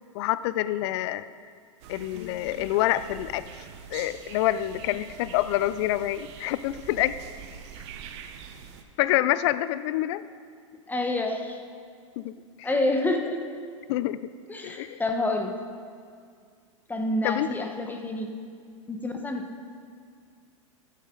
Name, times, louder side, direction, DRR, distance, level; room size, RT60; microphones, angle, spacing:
voice 1, 0.1-1.3 1.9-3.4 3.9-7.2 9.0-10.2 12.2-12.7 13.9-14.3 14.6-15.0 17.2-17.5, left 14 dB, 60° left, 15 dB, 0.5 m, -27 dB
sound 1, 1.8-8.8, right 7 dB, 60° right, 1.0 m, -44 dB
voice 2, 10.9-11.6 12.6-13.4 14.5-15.6 16.9-18.3 18.9-19.5, left 2 dB, 10° left, 4 dB, 1.2 m, -28 dB
14.0 x 9.5 x 3.9 m, 2.1 s
hypercardioid pair, 100°, 17 cm